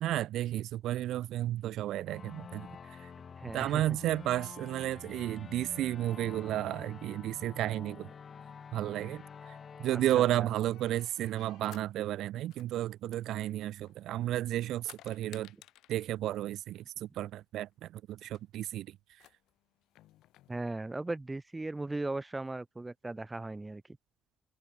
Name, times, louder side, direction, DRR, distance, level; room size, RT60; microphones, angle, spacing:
voice 1, 0.0-3.1 3.5-8.1 8.7-15.5 15.9-19.0, right 13 dB, 70° right, 0.9 m, -33 dB
sound 1, 2.1-11.4, left 6 dB, 45° left, 2.6 m, -49 dB
voice 2, 3.3-3.8 9.9-10.5 11.7-11.8 20.5-23.8, right 2 dB, 20° right, 1.1 m, -38 dB
sound 2, 10.7-11.9 12.5-14.2 14.5-16.1 17.3-17.4 17.6-17.7 18.1-18.4 19.1-20.5, left 15 dB, 70° left, 3.0 m, -57 dB
hypercardioid pair, 50°, 0 cm